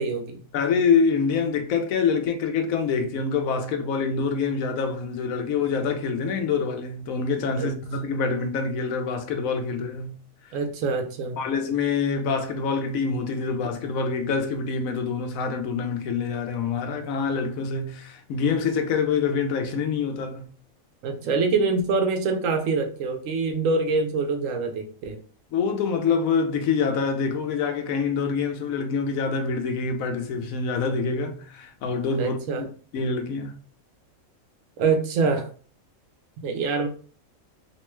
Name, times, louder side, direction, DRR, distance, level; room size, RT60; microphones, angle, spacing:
voice 1, 0.0-0.4 7.6-7.7 10.5-11.4 21.0-25.2 32.2-32.7 34.8-35.5 36.4-36.9, right 4 dB, 75° right, 0.9 m, -25 dB
voice 2, 0.5-10.2 11.4-20.5 25.5-32.7 32.9-33.6, left 5 dB, 80° left, 1.0 m, -26 dB
2.9 x 2.2 x 3.0 m
omnidirectional pair, 1.4 m